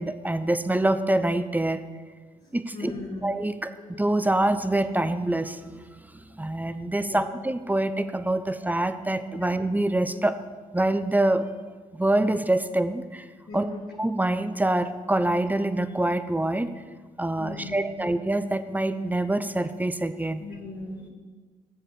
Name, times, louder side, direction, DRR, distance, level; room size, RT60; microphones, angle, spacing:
voice 1, 0.0-1.8 2.5-2.9 3.2-3.7 4.0-5.8 6.4-10.4 10.7-11.4 11.9-13.2 13.5-13.7 14.0-16.7 17.2-20.4, right 1 dB, 10° right, 11 dB, 0.8 m, -25 dB
voice 2, 2.4-3.2 7.0-7.3 13.5-13.9 17.4-18.1 20.4-21.1, left 2 dB, 55° left, -6 dB, 2.4 m, -38 dB
7.5 x 7.5 x 6.6 m, 1.4 s
hypercardioid pair, 45°, 18 cm